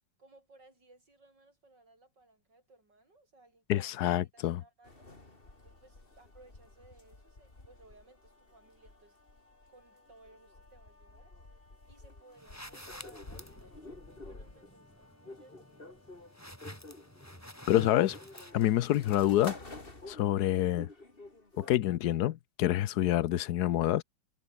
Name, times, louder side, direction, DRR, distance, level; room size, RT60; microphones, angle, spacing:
voice 1, 0.2-5.1 5.6-9.2 9.7-11.3 11.8-16.1 20.1-20.4, right 2 dB, 60° right, 8.4 m, -61 dB
voice 2, 3.7-4.6 17.7-18.2 18.5-19.6 20.1-20.9 21.6-24.0, left 13 dB, 65° left, 1.1 m, -27 dB
sound 1, 4.8-21.8, left 2 dB, 25° left, 3.6 m, -51 dB
sound 2, 12.4-19.0, equal, 5° left, 6.0 m, -50 dB
omnidirectional pair, 2.1 m